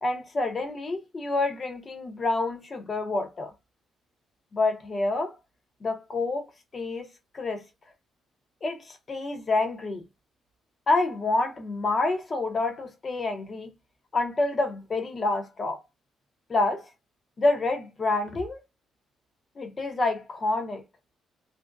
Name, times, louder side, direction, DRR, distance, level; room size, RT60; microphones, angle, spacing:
voice 1, 0.0-3.5 4.5-5.4 5.8-6.5 6.7-7.6 8.6-10.0 10.9-13.7 14.1-15.8 16.5-16.9 17.4-18.6 19.6-20.8, left 2 dB, 35° left, 0.7 m, -28 dB
2.6 x 2.1 x 2.3 m
cardioid pair, 90°, 0 cm